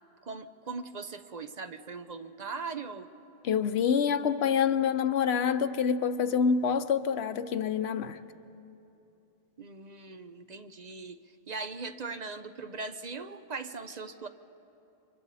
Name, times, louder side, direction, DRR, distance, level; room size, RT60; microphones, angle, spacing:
voice 1, 0.2-3.1 9.6-11.2 11.5-14.3, right 4 dB, 45° right, 0.7 m, -40 dB
voice 2, 3.4-8.2, left 7 dB, 85° left, 1.0 m, -27 dB
29.5 x 25.0 x 4.1 m
omnidirectional pair, 1.0 m